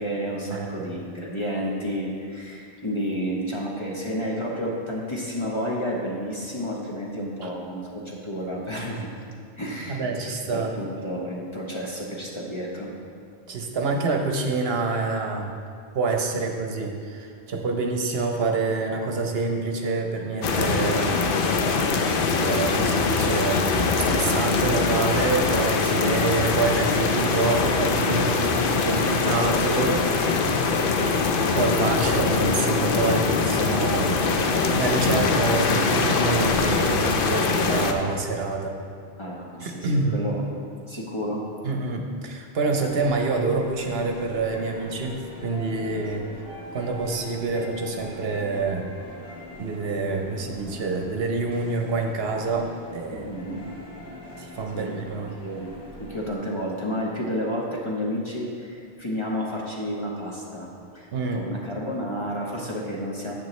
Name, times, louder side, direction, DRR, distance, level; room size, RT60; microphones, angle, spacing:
voice 1, 0.0-9.0 9.6-12.9 26.0-26.3 39.2-40.4 40.8-41.5 46.3-46.4 53.1-53.6 54.7-55.0 55.4-55.7 56.0-63.3, equal, 30° left, -3 dB, 0.9 m, -31 dB
voice 2, 9.9-10.8 13.5-15.6 15.9-21.1 22.3-23.7 24.1-30.0 31.6-38.8 39.6-40.2 41.6-46.3 46.7-48.9 49.6-53.3 54.4-55.3 61.1-61.5, right 3 dB, 65° right, 2 dB, 0.9 m, -27 dB
sound 1, 20.4-37.9, left 4 dB, 60° left, 0.7 m, -23 dB
sound 2, 42.7-56.4, equal, 5° right, 2.1 m, -42 dB
9.2 x 7.1 x 3.1 m, 2.3 s
omnidirectional pair, 1.1 m